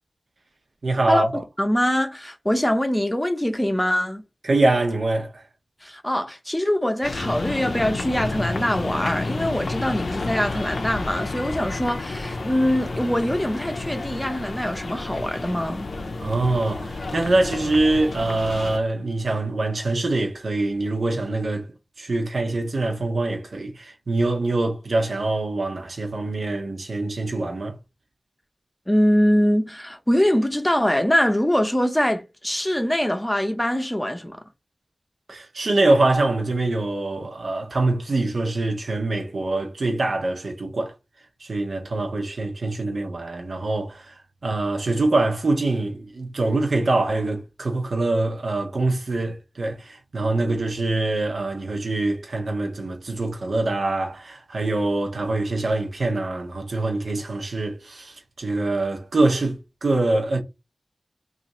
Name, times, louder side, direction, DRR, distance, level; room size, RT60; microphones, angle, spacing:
voice 1, 0.8-1.4 4.4-5.4 16.2-21.7 22.0-27.8 35.3-40.9 41.4-44.2 44.4-60.4, right 2 dB, 75° right, 0.8 m, -24 dB
voice 2, 1.6-4.2 5.8-15.9 28.9-34.4, equal, 10° left, 0.6 m, -23 dB
sound 1, 7.0-18.8, left 3 dB, 80° left, 0.5 m, -30 dB
2.8 x 2.5 x 4.1 m
wide cardioid pair, 65°, 0 cm